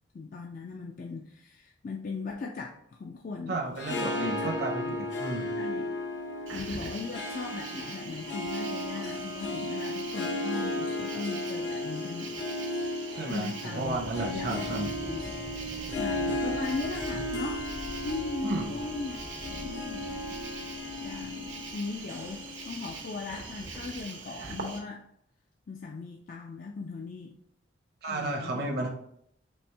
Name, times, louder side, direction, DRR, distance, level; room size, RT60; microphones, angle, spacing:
voice 1, 0.1-3.6 3.9-4.9 5.5-6.0 6.5-12.4 13.3-15.3 15.9-17.6 18.0-20.3 21.0-25.0 25.7-27.3 28.1-28.7, left 4 dB, 45° left, 1 dB, 0.3 m, -38 dB
voice 2, 3.5-5.5 13.1-14.9 18.4-18.7 28.0-28.9, right 2 dB, 55° right, -1 dB, 0.7 m, -33 dB
Harp, 3.6-23.0, left 1 dB, 80° left, 0.8 m, -35 dB
Cricket, 6.5-24.8, right 4 dB, 85° right, 0.9 m, -43 dB
sound 1, 13.8-24.0, right 1 dB, 15° right, 0.4 m, -46 dB
4.3 x 3.4 x 3.3 m, 0.71 s
head